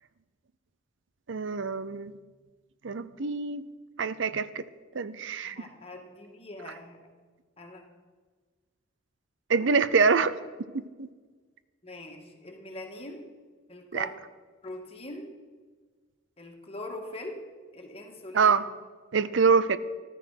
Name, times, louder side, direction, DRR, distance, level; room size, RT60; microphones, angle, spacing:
voice 1, 1.3-2.1 2.8-3.7 4.0-4.7 4.9-5.5 9.5-10.4 10.7-11.1 13.9-14.1 18.3-18.7 19.1-19.8, right 5 dB, 70° right, 15 dB, 0.6 m, -25 dB
voice 2, 5.4-7.0 7.6-7.8 11.8-13.3 13.7-14.1 14.6-15.3 16.4-17.4 17.7-18.7 19.6-19.8, left 1 dB, 30° left, 2 dB, 2.1 m, -42 dB
14.0 x 12.5 x 5.9 m, 1.4 s
head